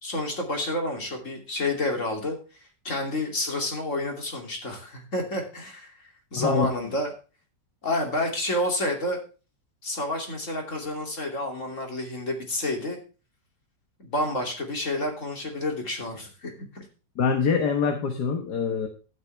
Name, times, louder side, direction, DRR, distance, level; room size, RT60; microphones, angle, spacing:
voice 1, 0.0-2.4 2.8-5.9 6.3-7.1 7.8-9.2 9.8-13.0 14.0-16.8, left 1 dB, 40° left, 2 dB, 3.1 m, -29 dB
voice 2, 6.4-6.7 17.2-18.9, left 5 dB, 65° left, 5 dB, 1.8 m, -24 dB
12.0 x 9.3 x 3.3 m, 0.35 s
omnidirectional pair, 2.0 m